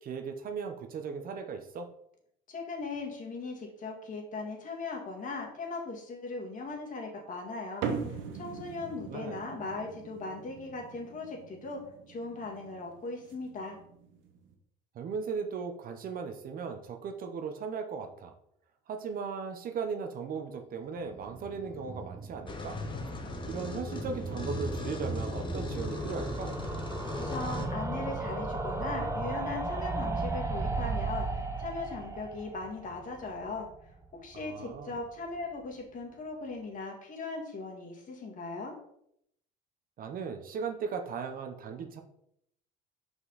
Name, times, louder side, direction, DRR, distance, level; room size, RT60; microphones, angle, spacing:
voice 1, 0.0-1.9 8.9-9.4 14.9-18.3 18.9-22.8 23.5-26.6 34.3-35.0 40.0-42.0, right 5 dB, 45° right, 6 dB, 0.9 m, -37 dB
voice 2, 2.5-13.8 27.1-33.7 34.2-38.7, left 3 dB, 40° left, 1 dB, 2.0 m, -39 dB
sound 1, 7.8-14.5, right 6 dB, 75° right, 1.1 m, -41 dB
sound 2, 21.1-34.1 34.4-34.5 34.7-34.8 35.0-35.1, right 3 dB, 15° right, 0.8 m, -36 dB
sound 3, 22.5-27.7, left 3 dB, 25° left, 1.1 m, -39 dB
5.8 x 5.4 x 4.1 m, 0.73 s
cardioid pair, 115°, 20 cm